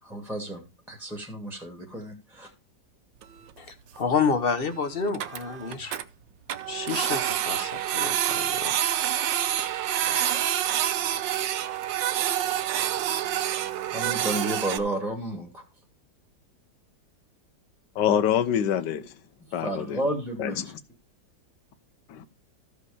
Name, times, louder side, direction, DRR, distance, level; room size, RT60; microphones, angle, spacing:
voice 1, 0.0-2.5 13.9-15.6 19.6-20.7, right 1 dB, ahead, 1.6 m, -32 dB
Printer, 3.2-3.3 3.5-3.6 4.0-4.1 4.3-4.4 4.7-4.8 5.0-6.0 6.5-14.8, right 11 dB, 85° right, 1.4 m, -27 dB
voice 2, 3.6-6.0 6.7-8.8, left 5 dB, 40° left, 1.0 m, -29 dB
voice 3, 18.0-19.1 19.5-20.0 20.4-20.7 22.1-22.3, left 9 dB, 70° left, 1.5 m, -25 dB
14.0 x 5.1 x 4.8 m
omnidirectional pair, 2.0 m